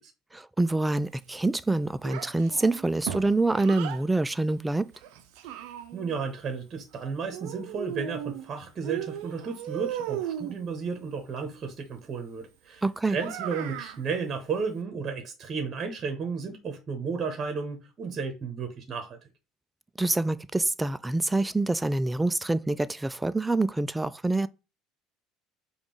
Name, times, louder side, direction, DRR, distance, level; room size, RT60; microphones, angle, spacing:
voice 1, 0.3-4.9 12.8-13.2 20.0-24.5, right 2 dB, 10° right, 0.3 m, -26 dB
Child speech kid speaking, 2.0-4.0 4.9-6.2 7.3-8.5 8.8-10.6 13.1-14.0, right 11 dB, 70° right, 0.5 m, -36 dB
voice 2, 5.9-19.2, right 5 dB, 40° right, 1.0 m, -33 dB
5.1 x 2.3 x 3.1 m
hypercardioid pair, 70°, 0 cm